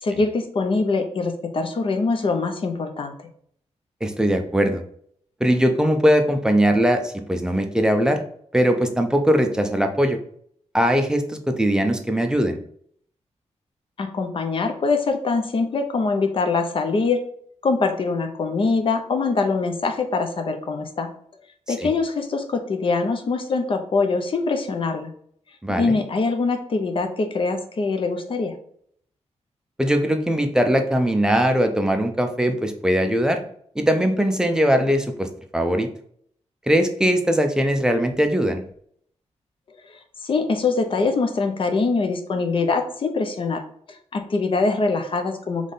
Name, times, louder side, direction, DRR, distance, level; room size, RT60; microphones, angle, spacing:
voice 1, 0.0-3.1 14.0-17.2 17.6-21.1 21.7-25.1 25.7-28.6 40.2-43.6 43.9-45.7, left 4 dB, 45° left, 6 dB, 0.6 m, -23 dB
voice 2, 4.0-4.8 5.4-8.2 8.5-10.2 10.7-12.6 21.8-21.9 25.6-25.9 29.8-33.4 33.8-35.9 36.7-38.6, equal, 5° right, 5 dB, 0.5 m, -20 dB
3.6 x 3.2 x 3.9 m, 0.64 s
wide cardioid pair, 135°, 12 cm